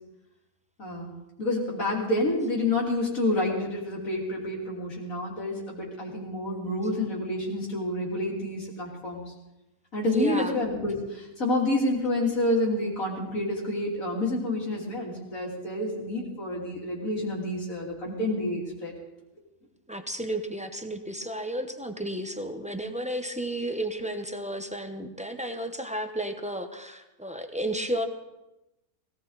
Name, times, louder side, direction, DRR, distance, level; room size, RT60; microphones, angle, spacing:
voice 1, 0.8-1.1 1.4-9.3 9.9-18.9, left 1 dB, 60° left, -2 dB, 3.7 m, -28 dB
voice 2, 10.1-10.6 19.9-28.1, right 1 dB, 5° right, 6 dB, 0.8 m, -32 dB
18.5 x 18.0 x 4.1 m, 0.97 s
omnidirectional pair, 1.6 m